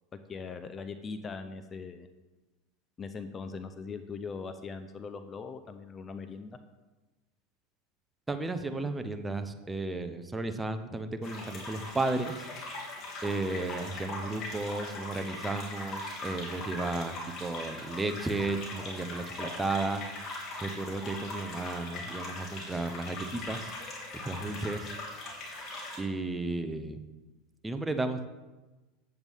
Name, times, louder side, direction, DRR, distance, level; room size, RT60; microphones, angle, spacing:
voice 1, 0.3-2.1 3.0-6.6, left 5 dB, 25° left, 9 dB, 0.6 m, -40 dB
voice 2, 8.3-12.5 13.2-20.0 20.6-23.7 24.2-24.9 26.0-27.0 27.6-28.2, right 2 dB, 10° right, 8 dB, 0.7 m, -33 dB
sound 1, 11.2-26.0, left 2 dB, 40° left, 2.9 m, -40 dB
9.1 x 8.0 x 3.6 m, 1.1 s
supercardioid pair, 115°, 0 cm